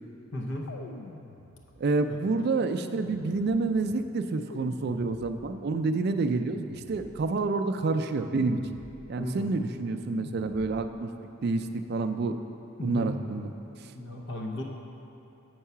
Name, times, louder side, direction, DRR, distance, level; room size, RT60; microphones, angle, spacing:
voice 1, 0.3-0.7 2.1-2.2 9.2-9.5 12.8-13.2 13.9-14.6, left 1 dB, 60° left, 1 dB, 0.7 m, -35 dB
sound 1, 0.7-1.9 2.6-3.8 4.5-5.6 6.4-7.4 8.3-9.3 10.1-11.0, left 3 dB, 90° left, 0.5 m, -45 dB
voice 2, 1.8-8.6 9.1-11.1 11.4-12.4 12.8-13.5, right 3 dB, 50° right, 8 dB, 0.3 m, -28 dB
8.0 x 4.7 x 5.6 m, 3.0 s
head